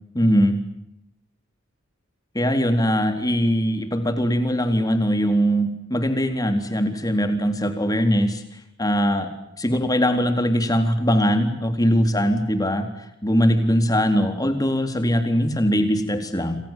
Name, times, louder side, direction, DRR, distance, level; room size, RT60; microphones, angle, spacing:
voice 1, 0.1-0.6 2.3-8.4 8.8-9.3 9.6-12.9 13.2-16.6, equal, 20° left, 7 dB, 3.8 m, -21 dB
29.0 x 26.0 x 7.5 m, 0.76 s
head